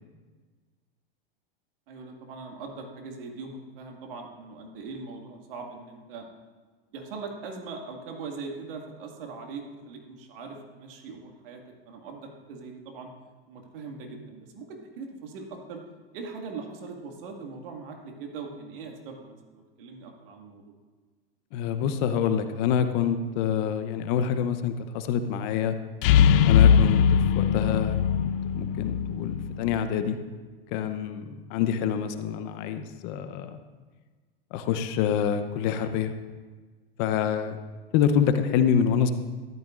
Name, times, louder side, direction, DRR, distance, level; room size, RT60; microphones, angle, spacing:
voice 1, 1.9-6.3 6.9-13.1 13.5-15.8 16.1-20.6, right 4 dB, 65° right, 2 dB, 2.1 m, -41 dB
voice 2, 21.5-25.8 26.4-30.2 30.7-33.6 34.5-36.1 37.0-37.6 37.9-39.1, left 8 dB, 50° left, 9 dB, 0.9 m, -26 dB
sound 1, 26.0-29.8, left 7 dB, 70° left, 0.5 m, -21 dB
13.5 x 12.0 x 2.6 m, 1.4 s
hypercardioid pair, 110°, 29 cm